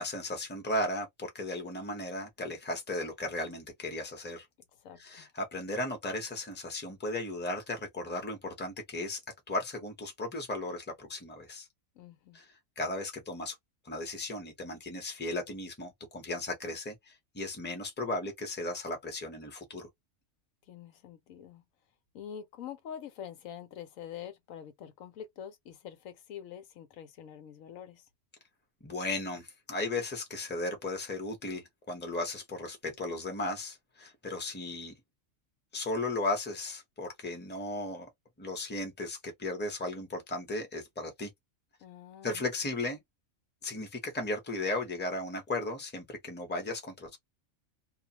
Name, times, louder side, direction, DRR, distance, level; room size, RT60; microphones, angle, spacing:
voice 1, 0.0-4.5 5.0-9.2 9.5-11.7 12.3-13.5 13.8-19.9 28.8-34.9 35.7-38.1 38.4-41.3 42.2-43.0 43.6-47.2, left 2 dB, 10° left, 0.7 m, -36 dB
voice 2, 4.8-5.3 12.0-12.4 20.7-21.6 22.1-28.0 41.8-42.4, left 9 dB, 85° left, 1.1 m, -45 dB
2.3 x 2.3 x 2.8 m
omnidirectional pair, 1.4 m